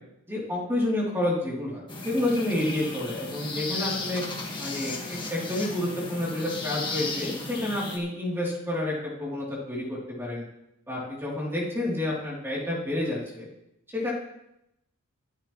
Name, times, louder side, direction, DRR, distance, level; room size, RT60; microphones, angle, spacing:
voice 1, 0.3-4.2 4.6-10.4 10.9-13.5 13.9-14.1, left 1 dB, 10° right, -5 dB, 3.4 m, -29 dB
sound 1, 1.9-8.0, left 3 dB, 20° left, 1.9 m, -35 dB
23.0 x 8.9 x 3.3 m, 0.83 s
head